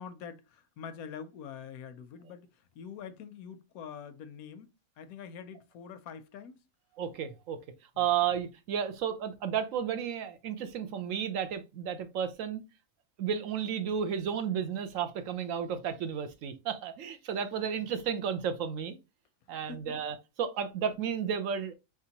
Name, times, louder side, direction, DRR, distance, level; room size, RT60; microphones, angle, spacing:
voice 1, 0.0-6.6 7.9-8.1 17.8-17.9 19.5-20.0, left 7 dB, 85° left, 1.1 m, -45 dB
voice 2, 7.0-7.6 8.0-12.6 13.2-19.0 19.5-21.7, right 8 dB, 70° right, 1.1 m, -32 dB
4.6 x 3.6 x 2.8 m
omnidirectional pair, 1.5 m